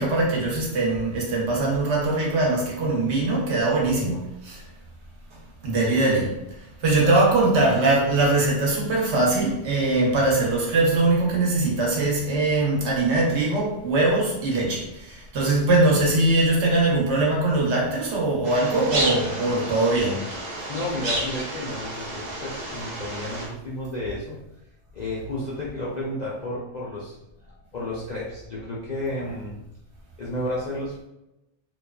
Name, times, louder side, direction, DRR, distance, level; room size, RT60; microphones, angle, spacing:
voice 1, 0.0-4.6 5.6-6.3 6.8-20.2, right 2 dB, 65° right, -2 dB, 1.0 m, -22 dB
sound 1, 18.4-23.5, right 1 dB, 45° right, 0.6 m, -31 dB
voice 2, 20.7-24.4 24.9-27.1 27.4-29.6 30.2-31.1, left 1 dB, 60° left, -6 dB, 0.4 m, -32 dB
2.7 x 2.3 x 2.2 m, 0.88 s
omnidirectional pair, 1.3 m